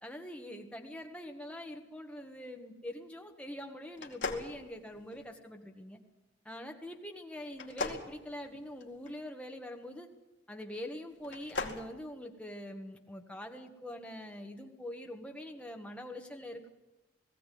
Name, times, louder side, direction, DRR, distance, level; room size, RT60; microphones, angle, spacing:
voice 1, 0.0-6.0 6.4-10.1 10.5-16.7, left 1 dB, 5° left, 3 dB, 1.6 m, -44 dB
sound 1, 4.0-5.3 7.5-9.1 11.2-11.8, left 3 dB, 70° left, 2.4 m, -39 dB
19.5 x 15.5 x 9.4 m, 1.0 s
head